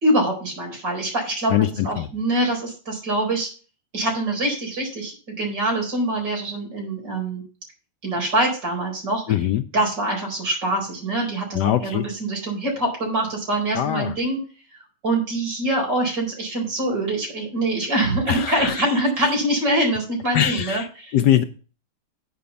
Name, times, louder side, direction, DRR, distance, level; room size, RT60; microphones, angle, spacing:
voice 1, 0.0-1.5 1.8-3.5 3.9-7.4 8.0-9.2 9.7-14.4 15.0-21.1, right 1 dB, 55° right, -1 dB, 5.0 m, -24 dB
voice 2, 1.5-2.1 9.3-9.6 11.5-12.0 13.7-14.2 18.3-18.9 20.3-21.4, left 11 dB, 75° left, 9 dB, 0.9 m, -22 dB
8.6 x 5.1 x 6.9 m, 0.37 s
omnidirectional pair, 2.4 m